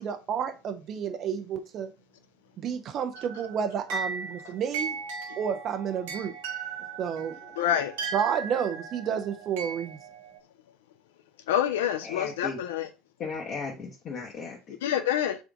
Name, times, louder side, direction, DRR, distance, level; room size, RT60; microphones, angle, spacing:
voice 1, 0.0-1.9 2.6-5.0 5.4-6.3 7.0-7.4 8.1-10.0, right 8 dB, 45° right, 0.4 m, -30 dB
sound 1, 3.1-10.4, right 5 dB, 70° right, 0.9 m, -37 dB
voice 2, 7.6-7.9 11.5-12.9 14.8-15.4, left 10 dB, 70° left, 0.5 m, -27 dB
voice 3, 12.0-12.6 13.2-14.8, left 4 dB, 45° left, 0.9 m, -36 dB
3.5 x 3.4 x 3.6 m
figure-of-eight pair, 65°, 0 cm